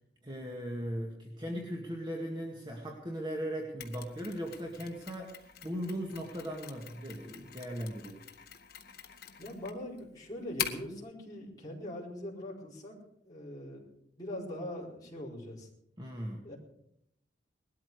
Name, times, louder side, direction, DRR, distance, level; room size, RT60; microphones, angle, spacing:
voice 1, 0.2-8.3 16.0-16.4, equal, 25° right, 0 dB, 1.8 m, -38 dB
Mechanisms, 3.8-11.0, left 9 dB, 55° left, 1.5 m, -44 dB
voice 2, 9.4-13.0 13.2-15.7 16.4-16.6, left 1 dB, 20° left, -6 dB, 4.7 m, -42 dB
20.0 x 13.0 x 4.8 m, 0.75 s
head